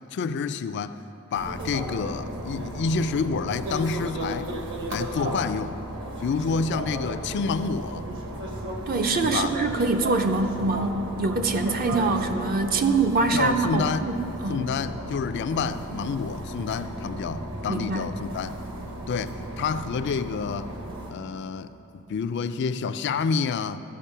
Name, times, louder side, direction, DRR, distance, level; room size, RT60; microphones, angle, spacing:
voice 1, 0.1-1.0 1.3-4.5 4.9-5.8 6.2-8.1 9.2-9.5 13.3-14.1 14.5-18.5 19.1-20.7 21.1-23.8, left 5 dB, 55° left, 12 dB, 0.3 m, -28 dB
sound 1, 1.3-21.1, right 1 dB, 65° right, 1.2 m, -35 dB
voice 2, 8.9-14.6 17.7-18.0, right 3 dB, 45° right, 6 dB, 0.5 m, -24 dB
13.5 x 5.2 x 5.6 m, 2.9 s
head